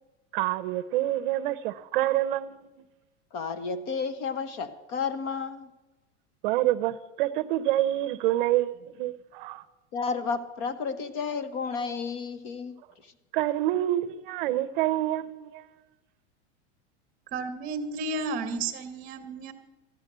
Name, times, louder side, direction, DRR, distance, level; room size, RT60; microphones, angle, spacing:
voice 1, 0.3-2.8 6.4-9.6 13.3-15.7, right 14 dB, 50° right, 0.7 m, -27 dB
voice 2, 3.3-5.7 9.9-12.7 13.0-13.1, left 5 dB, 35° left, 0.9 m, -32 dB
voice 3, 17.3-19.5, right 3 dB, 25° right, 1.2 m, -32 dB
14.0 x 10.5 x 6.8 m
supercardioid pair, 170°, 34 cm